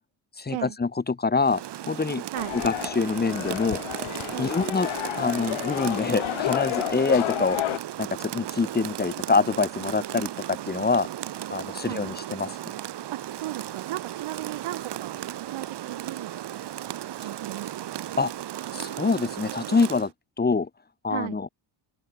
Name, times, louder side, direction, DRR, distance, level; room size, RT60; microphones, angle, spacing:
voice 1, 0.4-2.2 2.6-3.8 4.4-4.9 5.2-7.6 8.0-11.1 11.5-12.6 18.2-18.3 18.7-20.1 20.4-20.7 21.0-21.5, left 4 dB, 20° left, 7.8 m, -25 dB
Rain, 1.4-20.1, right 12 dB, 55° right, 5.7 m, -35 dB
sound 1, 2.3-7.8, left 15 dB, 80° left, 6.0 m, -31 dB
voice 2, 13.1-16.6 17.1-17.9 21.1-21.4, right 16 dB, 85° right, 6.6 m, -36 dB
open air
cardioid pair, 160°, 47 cm